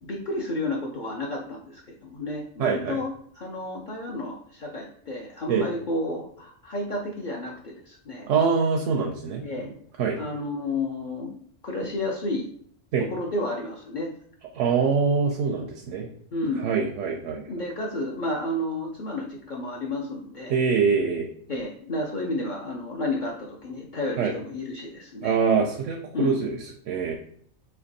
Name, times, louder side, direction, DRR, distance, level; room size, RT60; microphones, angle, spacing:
voice 1, 0.0-8.3 9.4-9.7 10.2-11.3 11.6-12.5 13.0-14.1 16.3-16.7 17.5-20.6 21.5-25.3 26.1-26.4, left 2 dB, 50° left, -2 dB, 0.6 m, -31 dB
voice 2, 2.6-3.0 5.5-5.7 8.2-9.7 10.0-10.2 12.9-13.1 14.5-16.1 16.5-17.5 20.5-21.3 24.2-24.3 25.2-26.6 26.9-27.2, right 5 dB, 85° right, 1 dB, 0.9 m, -24 dB
3.4 x 2.8 x 3.9 m, 0.62 s
omnidirectional pair, 1.3 m